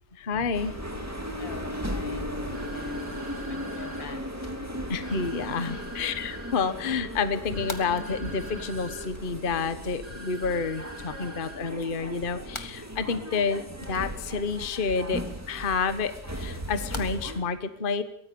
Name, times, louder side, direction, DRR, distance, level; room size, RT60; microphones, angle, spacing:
voice 1, 0.2-0.7 4.9-15.2 15.5-18.0, left 5 dB, 30° left, 11 dB, 1.2 m, -29 dB
sound 1, 0.5-17.4, equal, 10° right, 2.4 m, -37 dB
voice 2, 1.3-3.2 3.5-4.2 5.6-5.9, left 6 dB, 75° left, 7 dB, 2.7 m, -45 dB
sound 2, 2.5-4.0 5.0-6.5 7.5-9.0 10.0-11.5, right 2 dB, 25° right, 7.1 m, -45 dB
sound 3, 3.2-17.3, left 2 dB, 15° left, 1.8 m, -49 dB
23.0 x 18.5 x 7.0 m, 0.68 s
omnidirectional pair, 2.1 m